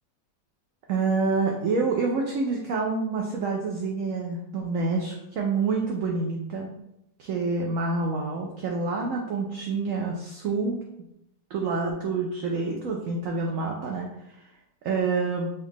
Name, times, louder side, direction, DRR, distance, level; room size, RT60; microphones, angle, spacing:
voice 1, 0.9-6.7 7.2-10.8 11.5-14.1 14.8-15.5, right 4 dB, 70° right, 0 dB, 0.8 m, -27 dB
4.2 x 2.4 x 3.5 m, 0.82 s
omnidirectional pair, 1.8 m